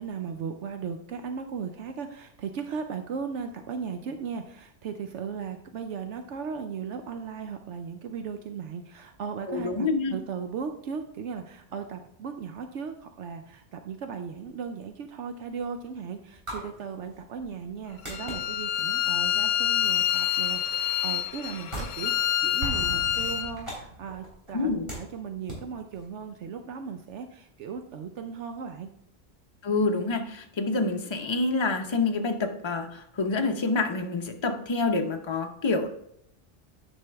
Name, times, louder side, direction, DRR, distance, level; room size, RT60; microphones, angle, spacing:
voice 1, 0.0-28.9, right 6 dB, 75° right, 6 dB, 0.9 m, -37 dB
voice 2, 9.5-10.1 24.5-24.9 29.6-35.9, left 3 dB, 30° left, 5 dB, 0.7 m, -27 dB
sound 1, 14.9-26.6, equal, 25° right, 3.6 m, -45 dB
Bowed string instrument, 18.1-23.5, left 11 dB, 85° left, 1.0 m, -27 dB
Explosion, 22.6-24.4, right 1 dB, 45° right, 1.2 m, -37 dB
9.6 x 5.4 x 3.4 m, 0.73 s
omnidirectional pair, 1.2 m